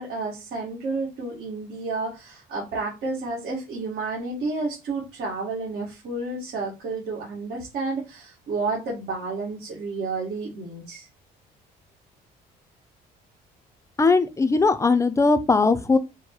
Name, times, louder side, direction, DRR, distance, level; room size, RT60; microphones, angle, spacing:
voice 1, 0.0-11.1, right 3 dB, 70° right, 1.6 m, -31 dB
voice 2, 14.0-16.0, left 3 dB, 15° left, 0.5 m, -19 dB
4.7 x 2.1 x 4.4 m
cardioid pair, 110°, 17 cm